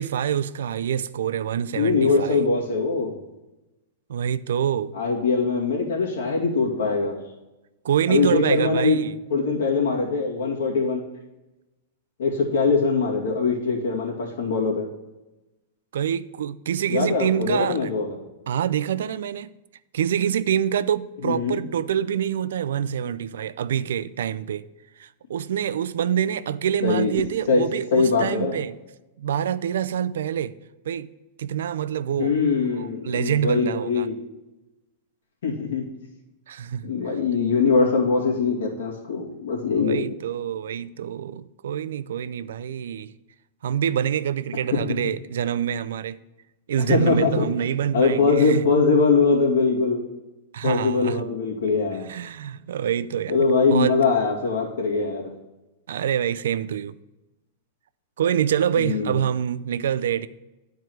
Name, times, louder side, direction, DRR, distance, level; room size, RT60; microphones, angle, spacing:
voice 1, 0.0-2.4 4.1-4.9 7.8-9.2 15.9-17.9 18.5-19.5 19.9-24.6 25.0-28.8 29.2-30.5 30.9-31.1 31.4-32.4 32.7-34.1 36.5-36.9 39.8-43.1 43.6-46.2 46.7-48.6 50.5-51.2 52.0-53.4 53.7-54.0 55.9-57.0 58.2-60.3, right 9 dB, 85° right, 0.4 m, -26 dB
voice 2, 1.7-3.2 4.9-7.2 8.1-9.0 9.3-11.0 12.2-14.8 16.9-18.2 21.2-21.6 26.8-27.1 27.5-27.6 27.9-28.6 32.2-34.1 35.4-35.9 36.8-40.0 46.8-47.5 47.9-50.0 50.6-52.0 53.3-55.3 58.8-59.2, left 4 dB, 90° left, 2.4 m, -22 dB
10.5 x 4.6 x 4.6 m
supercardioid pair, 175°, 0 cm